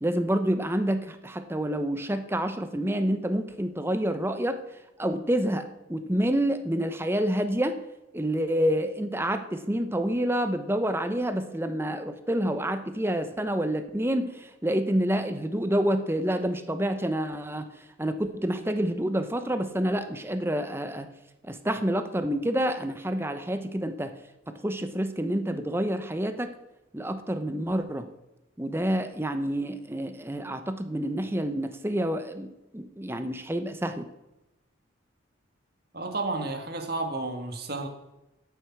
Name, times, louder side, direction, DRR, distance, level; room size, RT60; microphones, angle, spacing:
voice 1, 0.0-4.6 5.0-7.8 8.1-17.7 18.0-21.1 21.4-24.2 24.5-26.6 26.9-28.1 28.6-34.1, right 1 dB, 10° right, 9 dB, 0.8 m, -28 dB
voice 2, 35.9-37.9, right 2 dB, 50° right, 4 dB, 1.8 m, -31 dB
12.5 x 8.1 x 5.9 m, 0.99 s
head